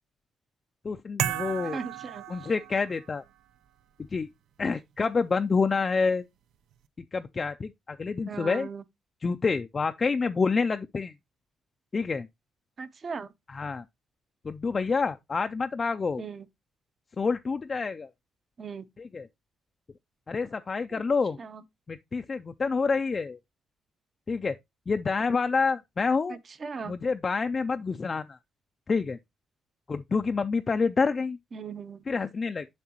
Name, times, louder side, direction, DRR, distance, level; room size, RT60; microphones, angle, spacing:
voice 1, 0.8-1.8 2.3-3.2 4.1-4.3 4.6-6.2 7.1-8.7 9.2-11.1 11.9-12.3 13.5-13.8 14.4-16.2 17.2-18.1 19.0-19.3 20.3-21.4 21.9-23.4 24.3-24.6 24.9-26.4 26.8-28.4 28.9-29.2 29.9-31.4 32.1-32.7, left 4 dB, 30° left, 0.3 m, -28 dB
sound 1, 1.2-3.1, right 11 dB, 85° right, 0.5 m, -33 dB
voice 2, 1.7-2.2 8.3-8.8 12.8-13.3 16.2-16.4 18.6-18.8 21.4-21.6 26.6-26.9 31.5-32.0, right 5 dB, 35° right, 0.6 m, -37 dB
7.3 x 6.0 x 2.8 m
cardioid pair, 140°, 0 cm